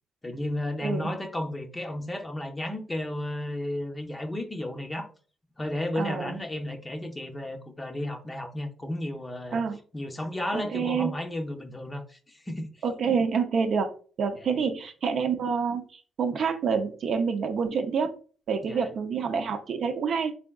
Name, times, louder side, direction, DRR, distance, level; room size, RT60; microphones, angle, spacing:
voice 1, 0.2-5.1 5.6-9.6 9.9-12.7 14.4-14.6 18.6-18.9, left 1 dB, 20° left, 4 dB, 0.6 m, -33 dB
voice 2, 6.0-6.3 9.5-9.8 10.5-11.1 12.8-13.9 14.2-18.1 18.5-20.3, right 6 dB, 60° right, 6 dB, 0.5 m, -27 dB
3.5 x 3.4 x 2.3 m, 0.40 s
cardioid pair, 90°, 0 cm